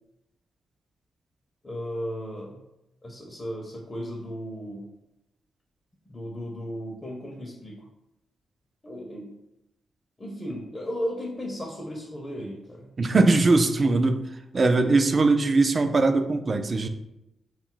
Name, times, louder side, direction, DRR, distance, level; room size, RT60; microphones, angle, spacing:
voice 1, 1.6-2.6 3.0-4.9 6.1-7.9 8.8-9.3 10.2-12.9, equal, 35° left, -1 dB, 0.6 m, -35 dB
voice 2, 13.0-14.2 14.5-16.9, right 3 dB, 45° right, 7 dB, 0.3 m, -21 dB
2.2 x 2.0 x 3.7 m, 0.90 s
supercardioid pair, 50°, 0 cm